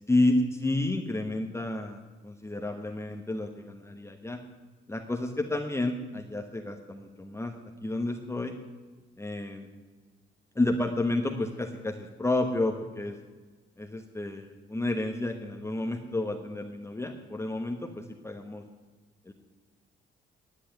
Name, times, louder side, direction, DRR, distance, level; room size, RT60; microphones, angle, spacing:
voice 1, 0.1-4.4 4.9-8.5 9.2-9.7 10.5-13.1 13.8-18.6 19.3-19.4, left 2 dB, 15° left, 2 dB, 1.2 m, -30 dB
10.5 x 8.1 x 9.0 m, 1.3 s
cardioid pair, 90°, 20 cm